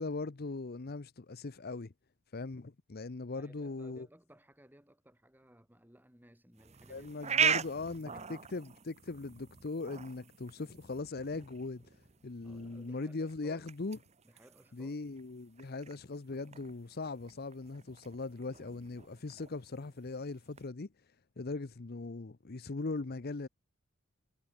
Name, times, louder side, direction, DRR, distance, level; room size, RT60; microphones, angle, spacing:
voice 1, 0.0-1.9 2.3-4.1 6.9-12.0 12.2-14.0 14.7-20.9 21.4-23.5, left 3 dB, 45° left, 0.7 m, -40 dB
voice 2, 3.0-8.4 12.4-13.7 14.2-15.0, equal, 10° right, 5.6 m, -60 dB
sound 1, 6.6-20.7, right 7 dB, 30° right, 1.0 m, -40 dB
head